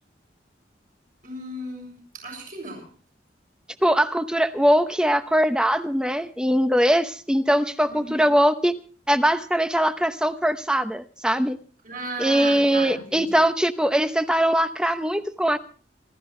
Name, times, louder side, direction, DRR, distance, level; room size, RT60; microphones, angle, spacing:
voice 1, 1.2-2.0 2.2-2.9 7.9-8.3 11.8-13.4, right 2 dB, 50° right, 1 dB, 7.4 m, -35 dB
voice 2, 3.8-8.7 9.1-11.6 12.2-15.6, equal, 5° right, 9 dB, 0.9 m, -21 dB
27.5 x 13.5 x 3.3 m, 0.39 s
head